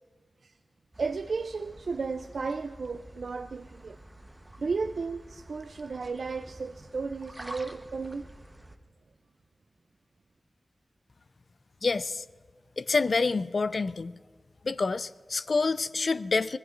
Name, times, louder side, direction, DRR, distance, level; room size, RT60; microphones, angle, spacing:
sound 1, 0.9-8.8, right 1 dB, 20° right, 1.0 m, -48 dB
voice 1, 1.0-4.0 4.6-8.3, right 4 dB, 80° right, 9 dB, 0.4 m, -34 dB
voice 2, 11.8-12.2 12.8-14.2 14.6-16.6, left 4 dB, 60° left, 15 dB, 0.4 m, -27 dB
25.0 x 20.5 x 2.5 m, 1.5 s
wide cardioid pair, 100°, 0 cm